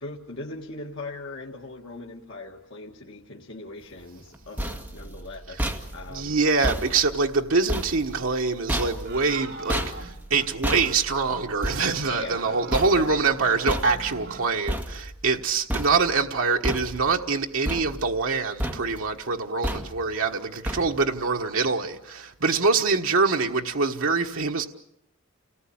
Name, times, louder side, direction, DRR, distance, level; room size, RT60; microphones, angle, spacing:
voice 1, 0.0-6.4 12.1-12.6 13.0-13.1, left 2 dB, 60° left, 1.9 m, -40 dB
sound 1, 4.2-15.4 15.7-16.3 16.6-17.3 17.7-18.3 18.6-19.1 19.6-20.2 20.7-21.2, equal, 10° right, 2.0 m, -33 dB
voice 2, 6.1-24.6, right 4 dB, 70° right, 1.4 m, -24 dB
sound 2, 9.0-10.5 10.8-11.0 11.3-11.5 11.7-14.5, right 4 dB, 55° right, 2.7 m, -41 dB
29.5 x 19.0 x 8.7 m
head